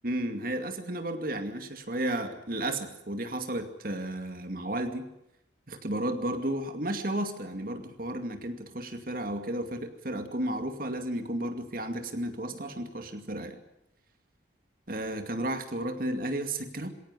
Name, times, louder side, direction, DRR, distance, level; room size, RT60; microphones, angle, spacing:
voice 1, 0.0-5.1 5.7-13.6 14.9-16.9, right 1 dB, 50° right, 7 dB, 2.4 m, -33 dB
21.5 x 17.5 x 9.8 m, 0.84 s
head